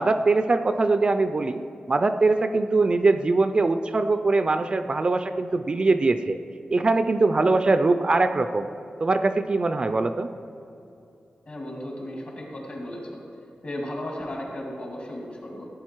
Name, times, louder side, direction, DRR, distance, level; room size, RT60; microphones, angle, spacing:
voice 1, 0.0-1.6 1.9-6.4 6.7-8.7 9.0-10.3, right 3 dB, 30° right, 9 dB, 0.3 m, -22 dB
voice 2, 11.5-13.2 13.6-15.7, left 1 dB, 45° left, -2 dB, 2.5 m, -35 dB
15.5 x 8.9 x 4.5 m, 2.8 s
wide cardioid pair, 180°, 3 cm